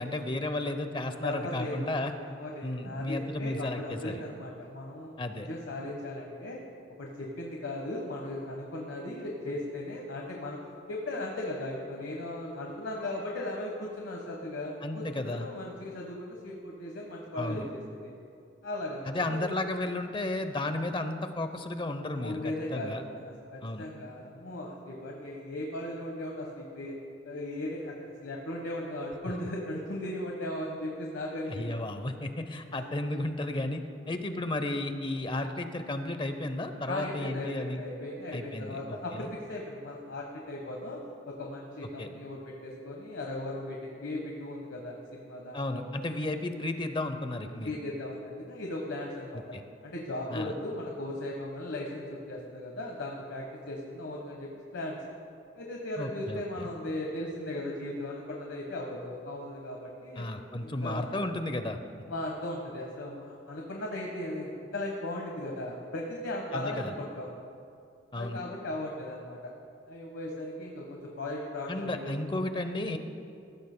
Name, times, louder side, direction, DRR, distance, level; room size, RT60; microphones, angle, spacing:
voice 1, 0.0-2.1 2.6-4.2 5.2-5.5 14.8-15.5 17.3-17.7 19.1-22.4 22.7-23.0 23.6-23.9 31.5-37.8 38.3-39.3 42.0-42.1 45.5-47.7 49.5-49.6 50.3-50.6 56.0-56.7 60.2-61.8 66.5-66.9 68.1-68.4 71.7-73.0, left 1 dB, 25° left, 8 dB, 0.7 m, -33 dB
voice 2, 1.2-6.6 7.0-10.6 10.9-18.1 18.6-19.4 22.2-23.2 23.5-26.9 27.2-31.6 36.9-41.0 41.2-45.8 47.6-49.5 49.8-55.0 55.5-60.3 60.6-61.1 62.1-67.3 68.1-69.4 69.9-72.1, left 1 dB, 90° left, -1 dB, 1.2 m, -37 dB
19.0 x 15.5 x 2.2 m, 2.5 s
head